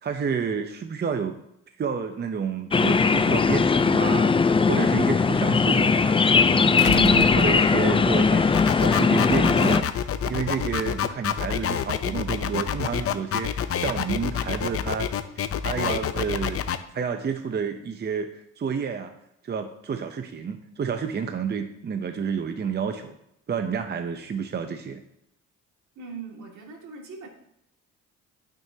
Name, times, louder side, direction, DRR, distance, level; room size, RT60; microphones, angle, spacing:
voice 1, 0.0-1.4 1.8-4.4 4.7-6.2 6.9-16.6 16.9-19.1 19.4-23.2 23.5-25.0, right 6 dB, 35° right, 7 dB, 0.7 m, -30 dB
sound 1, 2.7-9.8, left 4 dB, 20° left, 0.4 m, -19 dB
sound 2, 3.5-3.6 6.8-8.1 9.4-9.5, left 12 dB, 85° left, 0.5 m, -32 dB
sound 3, 8.5-16.8, left 9 dB, 50° left, 0.7 m, -27 dB
voice 2, 26.0-27.3, right 4 dB, 75° right, 0 dB, 2.4 m, -40 dB
9.1 x 9.1 x 2.8 m, 0.77 s
cardioid pair, 90°, 30 cm